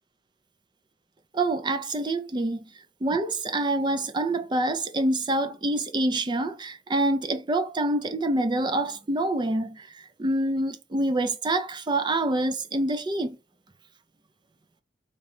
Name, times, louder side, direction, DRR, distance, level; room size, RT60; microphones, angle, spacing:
voice 1, 1.3-2.6 3.0-13.4, right 2 dB, 25° right, 0.4 m, -26 dB
3.8 x 2.3 x 4.0 m
head